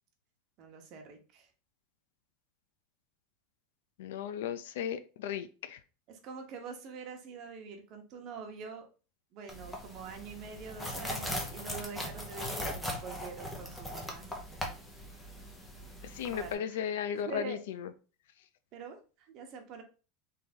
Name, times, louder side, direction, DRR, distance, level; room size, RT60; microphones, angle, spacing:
voice 1, 0.6-1.5 6.1-8.9 9.3-14.3 16.2-16.9 17.1-17.6 18.7-19.8, right 5 dB, 35° right, 3 dB, 1.0 m, -45 dB
voice 2, 4.0-5.8 16.0-17.9, left 8 dB, 80° left, 12 dB, 0.5 m, -36 dB
sound 1, 9.5-16.5, equal, 5° left, 0.7 m, -40 dB
3.4 x 3.3 x 4.2 m, 0.34 s
supercardioid pair, 170°, 0 cm